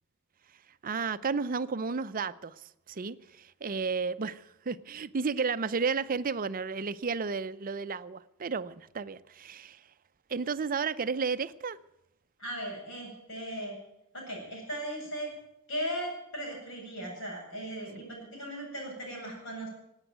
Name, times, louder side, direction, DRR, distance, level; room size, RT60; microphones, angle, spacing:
voice 1, 0.8-9.8 10.3-11.8, right 5 dB, 40° right, 0.5 m, -32 dB
voice 2, 12.4-13.8 14.1-15.3 15.7-18.1 18.3-19.7, equal, 60° left, 8.0 m, -37 dB
17.5 x 9.0 x 9.2 m
head